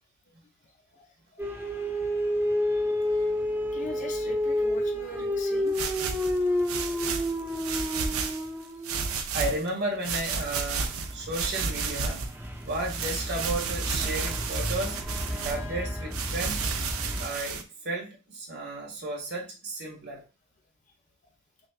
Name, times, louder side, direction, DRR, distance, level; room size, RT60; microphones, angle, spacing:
sound 1, 1.4-9.1 10.3-17.3, left 1 dB, 10° right, 0.9 m, -30 dB
voice 1, 3.7-5.7 6.9-7.0, left 2 dB, 35° left, 0.7 m, -40 dB
sound 2, 5.7-8.5 8.8-9.7 10.0-12.3 12.7-15.6 16.1-17.6, right 5 dB, 80° right, 0.6 m, -32 dB
voice 2, 9.3-12.3 12.6-15.0 15.3-16.7 17.2-20.2, right 2 dB, 50° right, 1.5 m, -33 dB
6.1 x 2.4 x 2.4 m
head